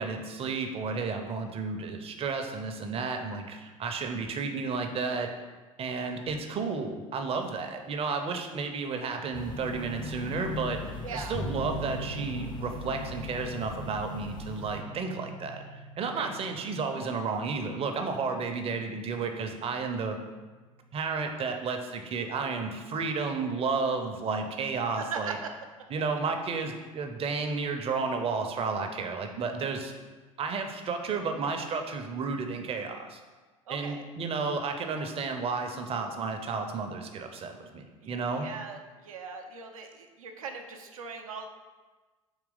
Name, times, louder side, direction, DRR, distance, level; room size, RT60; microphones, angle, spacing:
voice 1, 0.0-5.3 5.8-10.8 11.1-15.6 16.0-20.2 20.9-25.4 25.9-29.9 30.4-33.2 33.7-38.5, right 4 dB, 35° right, 5 dB, 0.6 m, -32 dB
sound 1, 9.3-14.8, left 3 dB, 25° left, 0.5 m, -40 dB
voice 2, 11.0-11.4 11.7-11.8 16.1-16.3 25.0-25.5 33.7-34.0 38.0-41.5, right 5 dB, 85° right, 4 dB, 0.5 m, -39 dB
sound 2, 11.3-22.3, right 1 dB, 55° left, 0.8 m, -43 dB
3.9 x 2.9 x 3.8 m, 1.3 s
hypercardioid pair, 70°, 17 cm